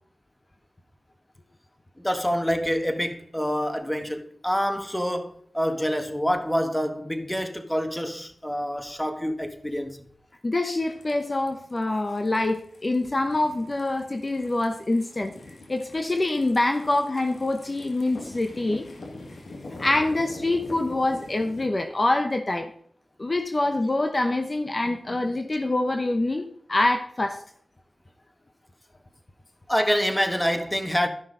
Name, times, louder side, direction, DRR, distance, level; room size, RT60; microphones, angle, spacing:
voice 1, 2.0-10.0 29.7-31.1, equal, 10° left, 1.3 m, -26 dB
voice 2, 10.4-15.3 15.7-18.8 19.8-22.7 23.2-27.4, left 2 dB, 40° left, 0.9 m, -25 dB
sound 1, 10.8-21.6, left 2 dB, 70° left, 1.9 m, -44 dB
13.0 x 5.7 x 3.9 m
cardioid pair, 55°, 0 cm